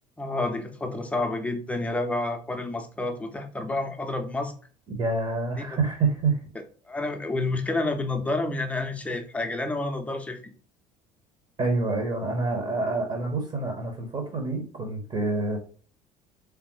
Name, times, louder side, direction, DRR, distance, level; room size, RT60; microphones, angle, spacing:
voice 1, 0.2-4.5 5.6-5.7 6.9-10.4, left 2 dB, 5° left, 4 dB, 0.7 m, -29 dB
voice 2, 4.9-6.4 11.6-15.6, right 3 dB, 30° right, 3 dB, 1.0 m, -27 dB
3.5 x 3.5 x 3.0 m, 0.41 s
figure-of-eight pair, 60°, 21 cm